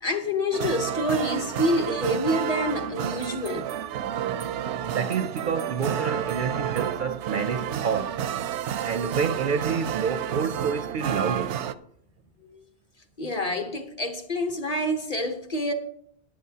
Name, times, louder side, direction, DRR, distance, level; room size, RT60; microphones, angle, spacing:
voice 1, 0.0-3.7 12.5-12.6 13.2-15.7, left 1 dB, 35° left, 1.0 m, -27 dB
sound 1, 0.5-11.7, right 9 dB, 85° right, 0.9 m, -30 dB
voice 2, 4.9-8.2 8.8-11.6, right 6 dB, 60° right, 0.6 m, -28 dB
20.5 x 7.8 x 2.8 m
omnidirectional pair, 1.1 m